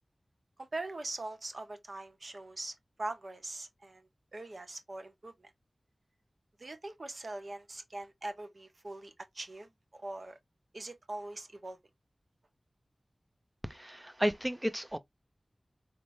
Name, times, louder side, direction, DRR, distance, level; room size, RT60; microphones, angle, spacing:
voice 1, 0.6-5.5 6.6-10.4 10.7-11.8, right 2 dB, 60° right, 1.1 m, -42 dB
voice 2, 13.6-15.0, equal, 15° right, 0.6 m, -33 dB
4.2 x 3.4 x 2.6 m
wide cardioid pair, 80°, 0 cm